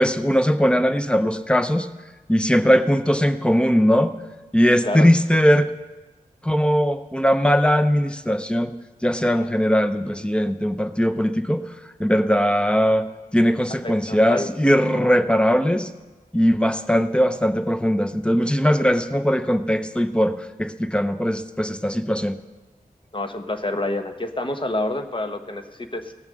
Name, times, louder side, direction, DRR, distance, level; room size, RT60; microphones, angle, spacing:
voice 1, 0.0-1.9 2.3-4.1 4.5-5.7 6.4-8.7 9.0-11.6 12.0-13.1 13.3-15.9 16.3-22.4, equal, 5° left, 9 dB, 0.7 m, -20 dB
voice 2, 13.8-14.5 23.1-26.1, left 2 dB, 35° left, 7 dB, 1.1 m, -28 dB
17.0 x 7.2 x 6.3 m, 1.2 s
wide cardioid pair, 55°, 15 cm